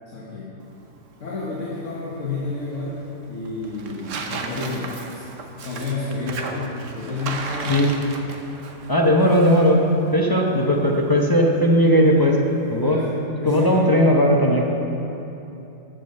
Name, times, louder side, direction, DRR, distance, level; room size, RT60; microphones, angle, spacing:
voice 1, 0.1-0.5 1.2-3.0 3.3-7.9 12.8-13.1 13.4-13.9, left 3 dB, 55° left, -6 dB, 1.6 m, -30 dB
Tearing, 0.6-12.8, right 4 dB, 60° right, 1.1 m, -37 dB
voice 2, 8.9-9.8 10.1-12.4 12.7-13.0 13.4-14.6, equal, 20° left, -1 dB, 0.6 m, -17 dB
14.0 x 5.2 x 6.6 m, 2.9 s
omnidirectional pair, 1.6 m